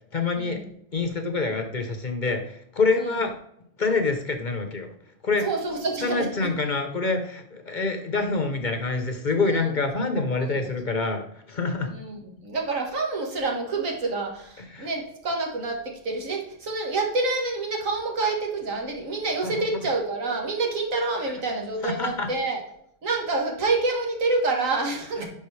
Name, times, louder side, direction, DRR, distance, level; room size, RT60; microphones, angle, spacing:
voice 1, 0.1-0.6 0.9-3.3 3.8-4.9 5.2-5.5 6.0-11.9 14.7-14.9 19.4-19.7 21.2-21.4 21.8-22.3, left 3 dB, 45° left, 5 dB, 0.8 m, -26 dB
voice 2, 5.4-6.5 9.6-9.7 10.1-10.7 11.9-22.6 23.0-25.3, right 3 dB, 85° right, 1 dB, 1.9 m, -28 dB
11.0 x 4.0 x 3.2 m, 0.73 s
omnidirectional pair, 1.3 m